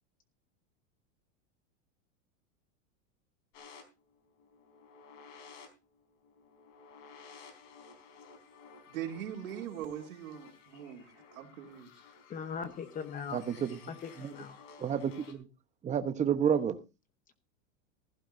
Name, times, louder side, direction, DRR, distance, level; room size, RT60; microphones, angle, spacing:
sound 1, 3.5-15.3, left 5 dB, 55° left, 4.1 m, -55 dB
voice 1, 8.9-11.9, right 10 dB, 80° right, 2.9 m, -41 dB
voice 2, 12.3-13.4 13.9-14.6, left 6 dB, 20° left, 0.9 m, -40 dB
voice 3, 13.3-13.8 14.2-14.3 14.8-15.5 15.8-16.8, right 8 dB, 15° right, 1.1 m, -30 dB
15.5 x 15.5 x 2.6 m
supercardioid pair, 150°, 41 cm